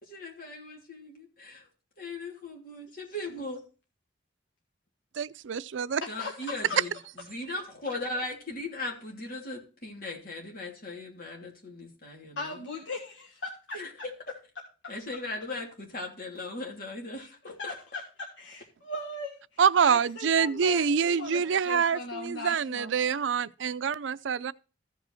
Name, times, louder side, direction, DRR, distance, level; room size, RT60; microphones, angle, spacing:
voice 1, 0.0-1.7 2.0-3.6 6.1-12.6 13.7-13.9 14.9-17.7, left 2 dB, 50° left, 3.1 m, -38 dB
voice 2, 5.2-6.0 19.6-24.5, right 6 dB, 80° right, 0.5 m, -26 dB
voice 3, 6.0-6.8 12.4-13.8 14.8-14.9 17.2-17.3 17.6-22.9, left 2 dB, 75° left, 1.6 m, -39 dB
15.0 x 5.4 x 4.2 m
head